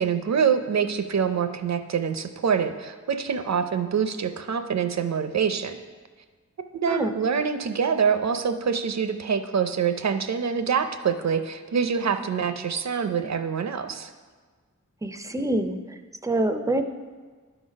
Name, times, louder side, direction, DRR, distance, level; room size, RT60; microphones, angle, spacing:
voice 1, 0.0-5.8 6.8-14.1, right 6 dB, 60° right, 9 dB, 0.5 m, -25 dB
voice 2, 15.0-16.8, right 1 dB, 10° right, 8 dB, 0.4 m, -26 dB
11.0 x 4.0 x 5.1 m, 1.5 s
wide cardioid pair, 90°, 30 cm